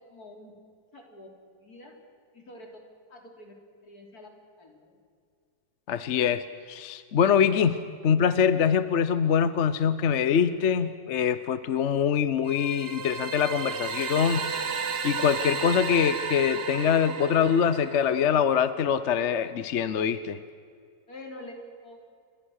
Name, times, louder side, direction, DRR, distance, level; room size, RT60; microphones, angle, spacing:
voice 1, 0.1-0.5 0.9-1.3 1.6-2.0 2.3-2.8 3.1-3.5 3.8-4.3 4.6-5.0 21.1-21.5 21.8-22.0, left 2 dB, 70° left, 2 dB, 4.1 m, -46 dB
voice 2, 5.9-7.8 8.0-14.5 15.0-20.4, left 7 dB, 55° left, 13 dB, 1.0 m, -24 dB
sound 1, 12.5-18.4, right 5 dB, 40° right, 1.3 m, -33 dB
29.0 x 23.5 x 6.5 m, 2.2 s
omnidirectional pair, 1.7 m